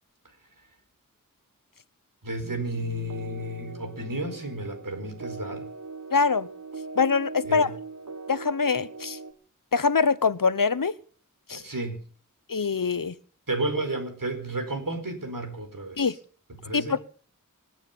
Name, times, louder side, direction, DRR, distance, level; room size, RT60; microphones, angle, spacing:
voice 1, 2.2-5.7 7.4-7.7 11.5-12.0 13.5-16.1 16.6-17.0, right 2 dB, 80° right, 4.7 m, -32 dB
sound 1, 2.4-9.3, right 3 dB, 60° right, 1.6 m, -40 dB
voice 2, 6.1-6.5 7.0-7.8 8.3-9.2 9.7-10.9 11.5-11.6 12.5-13.1 16.0-16.1 16.7-17.0, left 5 dB, 80° left, 1.0 m, -24 dB
26.0 x 9.0 x 5.7 m
wide cardioid pair, 45°, 33 cm